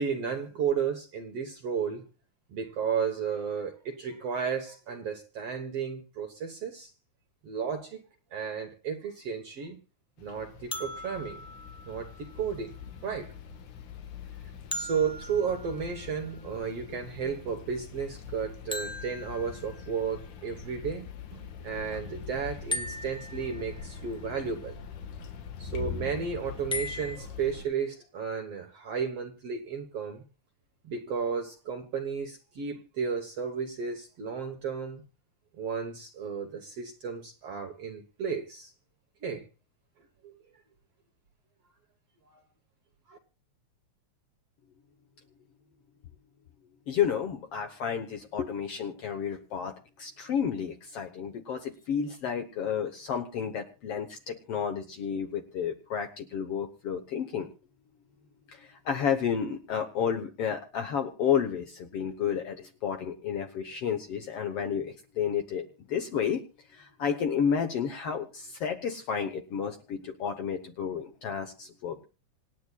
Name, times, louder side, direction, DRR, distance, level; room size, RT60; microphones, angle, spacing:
voice 1, 0.0-2.0 2.5-6.9 7.4-8.0 8.3-9.8 10.2-11.4 11.9-12.8 13.0-13.3 14.7-21.1 21.3-24.8 25.6-30.2 30.8-35.0 35.6-38.7 39.2-39.4 40.2-40.3 42.3-42.4 43.1-43.2, right 6 dB, 60° right, 2.0 m, -33 dB
sound 1, 10.2-27.7, left 6 dB, 80° left, 2.9 m, -43 dB
sound 2, 10.7-12.7 14.7-16.5 18.7-20.1 22.7-24.0 26.7-27.2, left 1 dB, 5° left, 0.4 m, -39 dB
voice 2, 46.9-57.5 58.5-66.4 66.7-72.0, left 7 dB, 60° left, 1.7 m, -31 dB
26.5 x 9.4 x 2.3 m
omnidirectional pair, 3.6 m